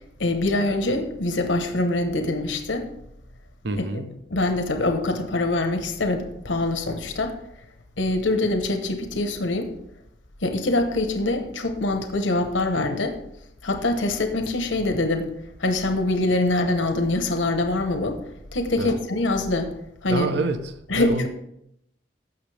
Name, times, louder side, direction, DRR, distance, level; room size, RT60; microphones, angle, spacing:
voice 1, 0.2-2.9 4.3-7.3 8.0-9.7 10.4-13.2 13.6-15.3 15.6-18.2 18.5-19.7 20.0-20.3 20.9-21.3, left 2 dB, 85° left, 6 dB, 1.0 m, -24 dB
voice 2, 3.6-4.2 18.8-19.0 20.1-21.3, right 2 dB, 65° right, 9 dB, 0.8 m, -27 dB
15.5 x 6.2 x 3.3 m, 0.79 s
head